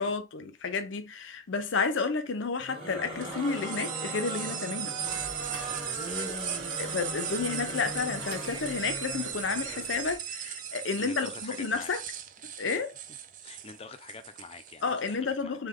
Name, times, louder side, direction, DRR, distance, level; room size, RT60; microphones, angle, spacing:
voice 1, 0.0-5.0 6.8-12.0 12.6-13.0 14.8-15.7, left 4 dB, 90° left, 0.6 m, -31 dB
sound 1, 2.6-9.9, right 1 dB, 30° right, 1.5 m, -39 dB
sound 2, 3.2-15.2, right 9 dB, 45° right, 0.4 m, -38 dB
sound 3, 5.0-10.2, equal, 60° right, 1.6 m, -45 dB
voice 2, 11.0-11.9 13.4-15.7, left 4 dB, 30° left, 0.5 m, -46 dB
3.3 x 2.2 x 3.6 m
head